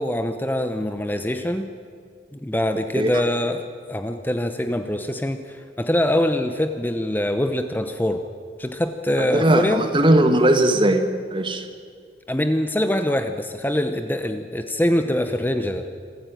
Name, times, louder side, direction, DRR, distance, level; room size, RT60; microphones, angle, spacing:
voice 1, 0.0-1.7 2.3-8.2 8.6-9.8 12.3-15.9, left 1 dB, 10° left, 8 dB, 0.9 m, -24 dB
voice 2, 9.2-11.0 11.3-11.6, right 1 dB, 30° right, 7 dB, 1.6 m, -18 dB
26.0 x 15.0 x 9.2 m, 2.2 s
head